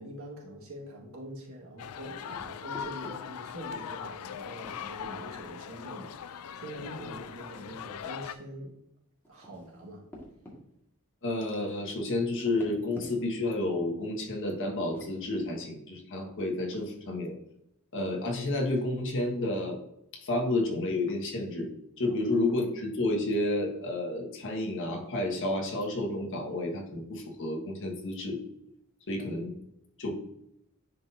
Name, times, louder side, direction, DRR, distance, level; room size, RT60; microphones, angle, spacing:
voice 1, 0.0-8.7 9.3-10.0 22.1-22.2, equal, 70° right, -1 dB, 1.8 m, -44 dB
sound 1, 1.8-8.3, left 8 dB, 85° left, 0.4 m, -40 dB
sound 2, 2.3-3.1 4.6-5.1 6.8-7.3 9.2-10.6 12.3-13.4 14.8-15.1 16.7-17.0 18.6-18.8, equal, 10° left, 1.8 m, -48 dB
voice 2, 11.2-17.3 17.9-19.8 20.1-21.7 22.0-28.4 29.1-29.5 30.0-30.1, left 2 dB, 60° left, 1 dB, 1.6 m, -30 dB
10.0 x 4.2 x 2.7 m, 0.79 s
head